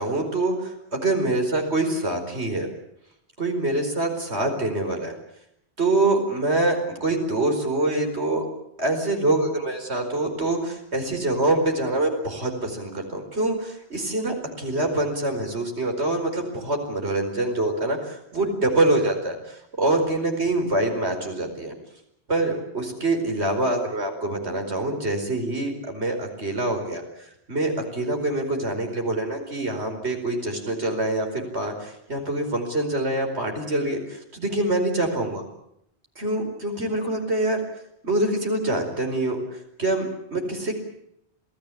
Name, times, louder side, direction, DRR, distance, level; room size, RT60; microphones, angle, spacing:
voice 1, 0.0-2.7 3.4-5.1 5.8-8.5 8.8-21.7 22.3-27.0 27.5-35.4 36.2-37.6 38.0-39.4 39.8-40.8, right 2 dB, 75° right, 4 dB, 5.1 m, -25 dB
27.0 x 18.0 x 8.5 m, 0.76 s
omnidirectional pair, 1.1 m